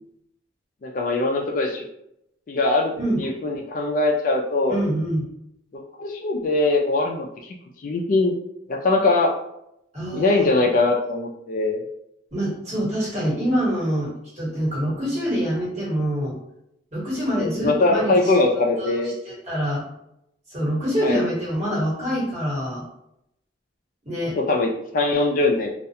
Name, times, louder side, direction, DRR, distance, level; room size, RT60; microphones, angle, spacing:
voice 1, 0.8-1.9 2.5-2.9 3.2-4.7 5.7-7.6 7.8-8.4 8.7-9.3 10.1-11.8 17.3-19.2 21.0-21.2 24.4-25.7, left 2 dB, 45° left, 1 dB, 0.3 m, -21 dB
voice 2, 4.7-5.3 9.9-10.6 12.3-16.4 16.9-19.0 19.2-19.9 20.5-22.9 24.0-24.4, equal, 35° right, -7 dB, 1.3 m, -25 dB
2.3 x 2.1 x 2.7 m, 0.78 s
head